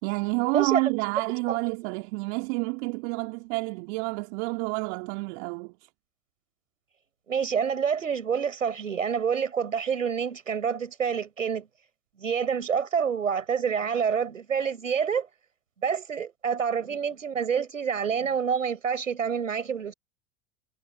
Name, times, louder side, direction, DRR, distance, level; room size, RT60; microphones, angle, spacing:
voice 1, 0.0-5.7, right 31 dB, 55° right, 2.8 m, -29 dB
voice 2, 7.3-11.7 12.2-15.3 15.8-19.9, right 7 dB, 85° right, 7.2 m, -27 dB
figure-of-eight pair, 80°, 38 cm